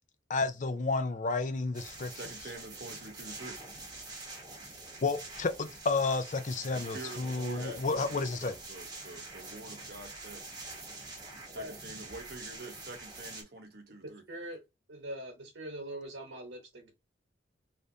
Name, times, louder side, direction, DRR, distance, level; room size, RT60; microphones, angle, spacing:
voice 1, 0.3-2.1 5.0-8.6, left 3 dB, 40° left, 0.5 m, -31 dB
sound 1, 1.7-13.4, right 2 dB, 20° right, 1.0 m, -46 dB
voice 2, 2.1-3.6 6.7-10.5 11.5-14.2, right 2 dB, 55° right, 0.9 m, -46 dB
voice 3, 14.0-14.6 14.9-16.9, right 1 dB, 80° right, 1.1 m, -42 dB
3.4 x 2.5 x 2.7 m
head